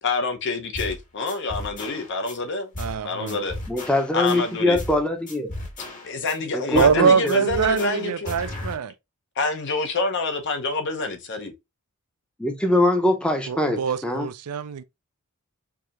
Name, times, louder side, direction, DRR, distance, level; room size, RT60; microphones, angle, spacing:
voice 1, 0.0-2.7 3.0-3.5 4.1-4.8 6.0-8.3 9.4-11.5, left 3 dB, 55° left, 0.8 m, -27 dB
sound 1, 0.7-1.0 1.3-2.3 2.7-3.0 3.3-5.0 5.3-6.3 6.7-7.0 7.3-8.7, left 1 dB, 35° left, 1.1 m, -35 dB
voice 2, 2.8-3.4 6.7-8.9 13.5-14.8, right 6 dB, 85° right, 0.4 m, -23 dB
voice 3, 3.7-5.5 6.5-7.4 12.4-14.3, left 1 dB, 5° left, 0.6 m, -23 dB
4.8 x 2.8 x 2.5 m
head